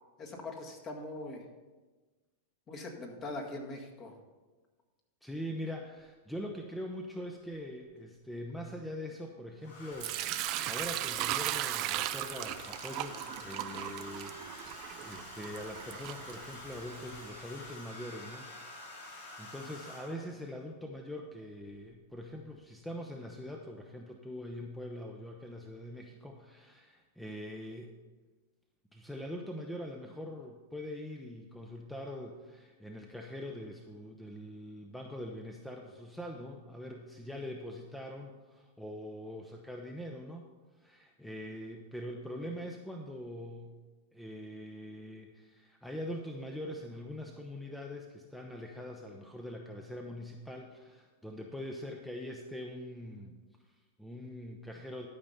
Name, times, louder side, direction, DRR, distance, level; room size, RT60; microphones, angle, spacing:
voice 1, 0.2-1.4 2.7-4.1, left 2 dB, 35° left, 1 dB, 1.9 m, -41 dB
voice 2, 5.2-18.5 19.0-27.9 28.9-40.5 40.7-43.7 44.1-53.4 53.7-55.1, left 1 dB, 5° left, 2 dB, 0.8 m, -43 dB
Domestic sounds home sounds, 7.8-8.2 9.6-20.4 21.6-21.9 22.1-22.5, left 1 dB, 75° left, 3.3 m, -48 dB
Sink (filling or washing) / Liquid, 10.0-16.9, right 15 dB, 45° right, 0.4 m, -37 dB
12.5 x 5.2 x 5.7 m, 1.3 s
hypercardioid pair, 105°, 0 cm